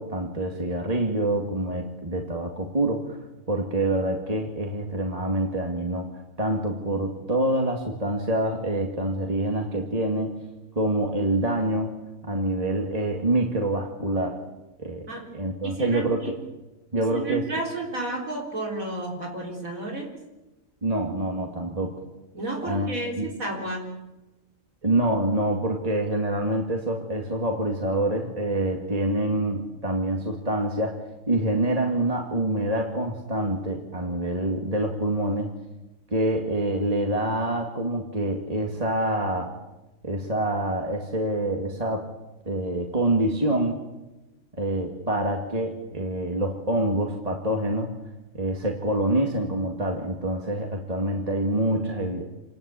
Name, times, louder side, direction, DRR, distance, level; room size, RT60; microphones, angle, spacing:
voice 1, 0.0-3.2 3.5-6.1 6.4-10.3 10.8-11.9 12.2-14.4 14.8-16.4 16.9-17.5 20.8-21.9 22.6-22.9 23.2-23.3 24.8-31.0 31.3-35.6 36.1-39.5 40.0-42.1 42.5-43.8 44.6-47.9 48.3-52.2, right 1 dB, 30° right, 2 dB, 2.3 m, -26 dB
voice 2, 15.6-16.3 17.0-20.1 22.3-23.9, right 2 dB, 85° right, 0 dB, 4.5 m, -32 dB
28.0 x 20.0 x 8.5 m, 1.1 s
omnidirectional pair, 1.4 m